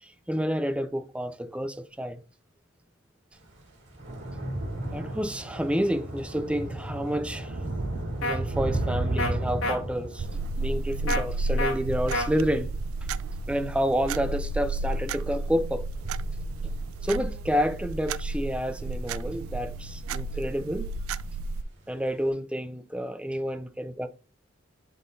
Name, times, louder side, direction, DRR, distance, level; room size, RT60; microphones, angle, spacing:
voice 1, 0.0-2.2 4.9-7.6 8.2-10.3 10.6-12.7 13.5-15.9 17.0-20.9 21.9-24.1, equal, 5° right, 0.4 m, -29 dB
Thunder / Rain, 3.4-20.0 20.3-20.8 21.1-21.2, right 1 dB, 60° right, 2.0 m, -35 dB
sound 1, 8.2-8.4 9.2-9.3 9.6-9.8 11.1-11.2 11.6-11.7 12.1-12.3, left 1 dB, 70° left, 1.3 m, -27 dB
sound 2, 10.2-21.6, right 2 dB, 80° right, 0.3 m, -32 dB
11.0 x 3.7 x 2.7 m
head